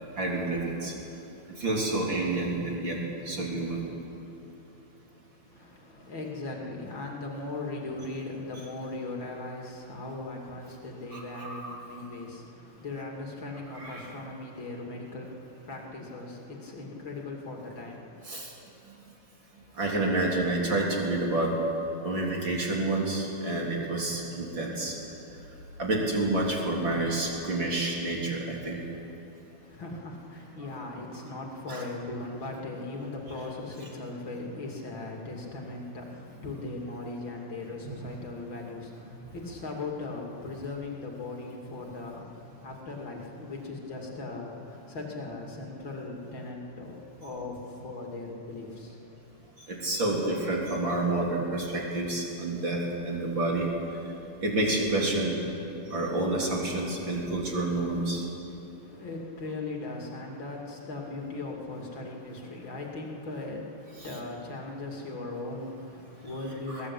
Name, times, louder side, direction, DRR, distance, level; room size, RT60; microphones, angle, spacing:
voice 1, 0.2-0.9 1.5-3.0 3.3-3.8 11.1-11.9 13.7-14.0 18.3-18.5 18.9-19.0 19.8-21.5 22.0-24.9 25.8-28.8 31.7-31.8 49.7-53.7 54.4-55.3 55.9-58.2 64.0-64.1 66.7-66.8, right 2 dB, 30° right, -2 dB, 4.0 m, -29 dB
voice 2, 5.5-18.2 29.6-49.0 58.8-66.9, left 2 dB, 35° left, 0 dB, 2.9 m, -38 dB
22.0 x 18.0 x 8.5 m, 3.0 s
omnidirectional pair, 4.2 m